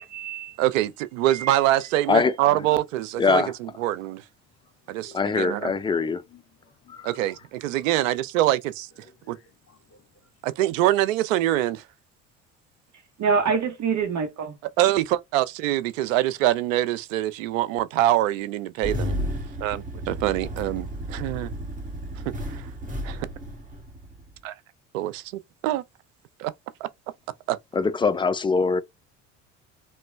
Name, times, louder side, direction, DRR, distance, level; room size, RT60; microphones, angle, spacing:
voice 1, 0.0-0.6 1.3-1.6 13.2-14.6, right 5 dB, 50° right, 0.9 m, -26 dB
voice 2, 0.6-4.3 4.9-5.7 7.0-7.3 7.6-9.4 10.4-11.9 14.8-19.2 19.6-21.5 22.1-22.7 23.0-23.3 24.4-24.6 24.9-25.8 26.4-26.5 26.8-26.9 27.5-27.6, right 14 dB, 85° right, 0.5 m, -25 dB
voice 3, 3.2-3.5 5.1-6.2 27.8-28.8, left 4 dB, 15° left, 0.4 m, -22 dB
voice 4, 6.1-7.0 9.2-10.3, left 5 dB, 40° left, 1.1 m, -57 dB
Engine starting, 18.8-24.4, equal, 20° right, 1.2 m, -33 dB
3.0 x 2.2 x 3.2 m
hypercardioid pair, 70°, 38 cm